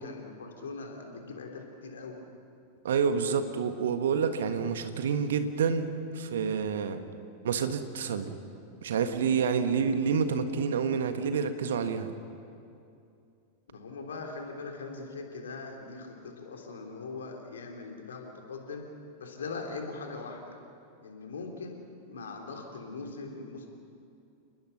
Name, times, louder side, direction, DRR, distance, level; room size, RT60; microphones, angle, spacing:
voice 1, 0.0-2.2 13.7-18.8 19.2-20.6 21.0-21.8 22.1-23.7, left 4 dB, 65° left, 2 dB, 3.5 m, -41 dB
voice 2, 2.8-7.0 7.4-8.4 8.8-12.1, right 6 dB, 60° right, 9 dB, 1.6 m, -28 dB
29.5 x 20.5 x 5.8 m, 2.6 s
figure-of-eight pair, 90°, 0 cm